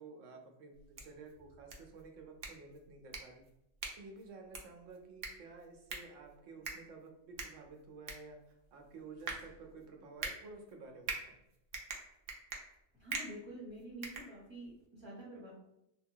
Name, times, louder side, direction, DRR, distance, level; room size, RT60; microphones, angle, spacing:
voice 1, 0.0-3.4 4.0-11.4, right 3 dB, 85° right, 3 dB, 1.0 m, -52 dB
sound 1, 0.7-14.9, right 4 dB, 60° right, 0.6 m, -46 dB
voice 2, 12.9-15.5, right 1 dB, 25° right, -5 dB, 0.8 m, -48 dB
2.8 x 2.2 x 2.7 m, 0.85 s
omnidirectional pair, 1.3 m